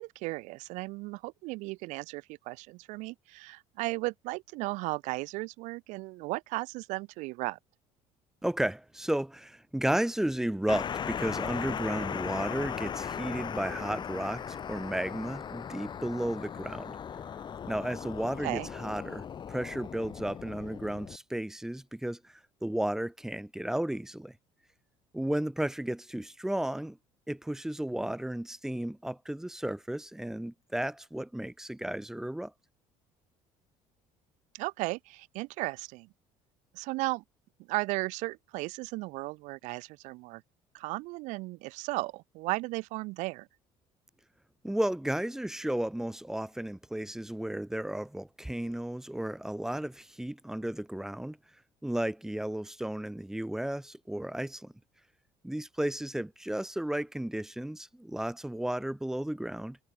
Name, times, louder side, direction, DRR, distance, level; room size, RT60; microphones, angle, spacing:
voice 1, 0.0-7.6 18.4-18.7 34.5-36.1 36.7-37.2 37.6-40.4 40.7-43.5, right 23 dB, 75° right, 1.1 m, -35 dB
voice 2, 8.4-17.0 17.7-24.3 25.1-27.0 27.3-32.5 44.6-51.4 51.8-54.7 55.4-59.8, right 1 dB, 5° right, 0.6 m, -33 dB
sound 1, 10.7-21.2, left 8 dB, 40° left, 2.3 m, -38 dB
cardioid pair, 105°, 12 cm